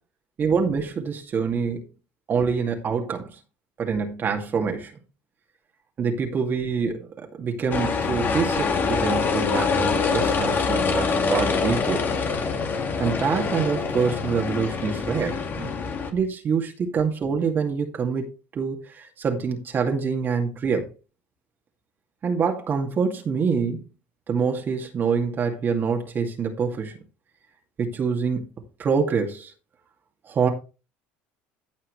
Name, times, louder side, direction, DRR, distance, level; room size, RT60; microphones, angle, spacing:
voice 1, 0.4-1.8 2.3-3.4 3.8-4.9 6.0-12.0 13.0-15.7 16.1-18.3 18.5-20.9 22.2-23.8 24.3-26.9 27.8-28.5 28.8-29.5 30.2-30.5, right 5 dB, 40° right, 2.2 m, -25 dB
sound 1, 7.7-16.1, left 5 dB, 35° left, 2.1 m, -25 dB
15.0 x 5.6 x 3.3 m
supercardioid pair, 90°, 5 cm